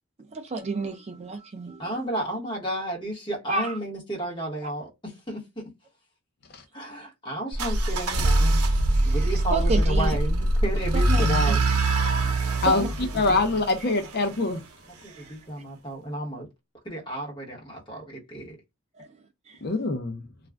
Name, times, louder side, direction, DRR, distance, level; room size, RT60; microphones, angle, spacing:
voice 1, 0.2-1.9 3.5-3.8 8.9-10.2 10.9-11.6 12.2-12.3 12.7-12.9 15.1-15.3 19.0-19.1 19.5-19.6, right 3 dB, 30° right, 0.4 m, -31 dB
voice 2, 1.8-5.4 6.7-8.6 9.1-11.6 12.6-12.8 13.1-13.4 14.9-16.5 16.8-18.6, right 1 dB, 20° left, 1.0 m, -32 dB
sound 1, 7.5-14.4, right 1 dB, 85° right, 0.7 m, -23 dB
voice 3, 13.1-14.6 19.6-20.3, left 3 dB, 45° left, 0.5 m, -24 dB
2.4 x 2.2 x 3.3 m
head